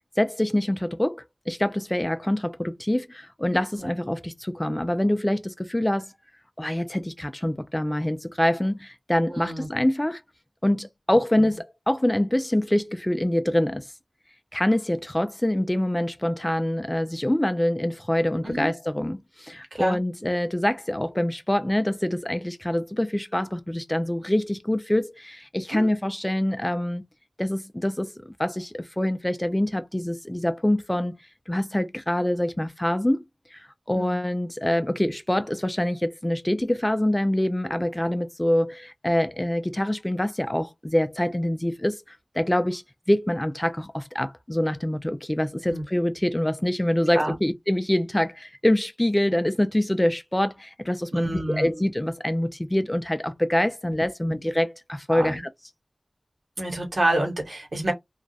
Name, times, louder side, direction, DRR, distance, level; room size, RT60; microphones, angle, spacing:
voice 1, 0.2-6.1 6.6-10.2 10.6-13.9 14.5-27.0 27.4-31.1 31.5-33.3 33.5-42.8 43.1-55.5, left 1 dB, 15° left, 0.4 m, -25 dB
voice 2, 9.3-9.7 18.4-18.7 19.7-20.0 25.7-25.9 33.9-34.2 37.7-37.8 45.7-45.8 47.1-47.3 51.1-51.8 55.1-55.4 56.6-57.9, right 1 dB, 65° right, 1.2 m, -28 dB
2.4 x 2.0 x 2.5 m
wide cardioid pair, 45°, 0 cm